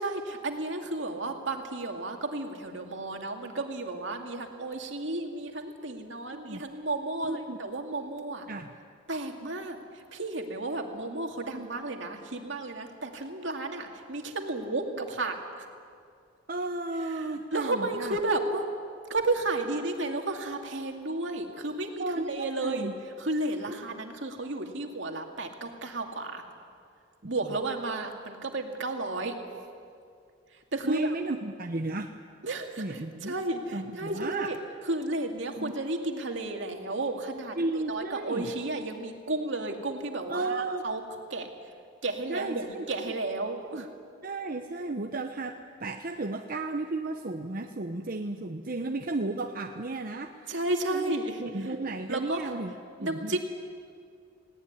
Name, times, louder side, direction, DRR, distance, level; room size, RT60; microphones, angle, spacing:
voice 1, 0.0-8.5 9.1-15.4 17.2-17.3 17.5-18.7 19.1-22.9 23.2-26.4 27.3-29.4 30.7-31.1 32.4-34.6 34.9-41.0 41.3-41.5 42.0-43.9 50.5-51.4 52.1-52.4 53.0-53.4, right 2 dB, 70° right, 3 dB, 2.4 m, -32 dB
voice 2, 7.3-7.6 8.5-8.7 11.5-11.7 16.5-18.2 22.0-23.0 27.2-27.3 30.8-32.1 32.8-33.3 33.7-34.5 35.6-35.8 37.6-38.5 39.6-39.8 40.3-40.9 42.3-43.1 43.8-43.9 44.2-50.5 50.9-52.7 53.0-53.4, right 2 dB, 45° right, 4 dB, 0.9 m, -34 dB
19.5 x 18.0 x 9.8 m, 2.3 s
head